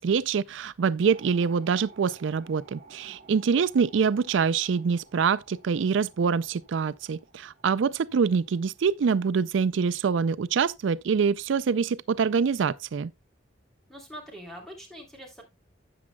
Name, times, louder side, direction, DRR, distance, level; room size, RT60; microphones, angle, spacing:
voice 1, 0.0-13.1, right 6 dB, 80° right, 0.4 m, -25 dB
sound 1, 1.0-10.5 10.7-10.8, right 3 dB, 35° right, 2.0 m, -55 dB
voice 2, 13.9-15.4, equal, ahead, 3.0 m, -43 dB
12.0 x 8.6 x 2.2 m
head